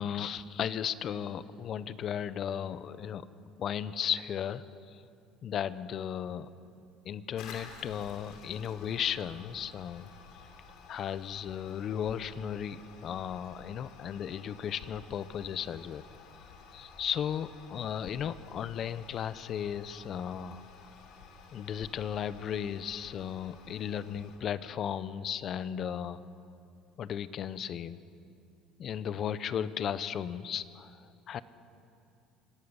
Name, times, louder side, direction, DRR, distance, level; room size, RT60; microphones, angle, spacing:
voice 1, 0.0-3.3 3.6-5.0 5.4-6.5 7.0-10.1 10.9-16.0 16.7-20.6 21.5-26.2 27.0-28.0 28.8-31.4, left 9 dB, 45° left, 15 dB, 0.9 m, -35 dB
Toilet flush, 7.4-24.4, left 5 dB, 65° left, 3.7 m, -52 dB
25.0 x 18.0 x 7.2 m, 2.6 s
supercardioid pair, 115°, 0 cm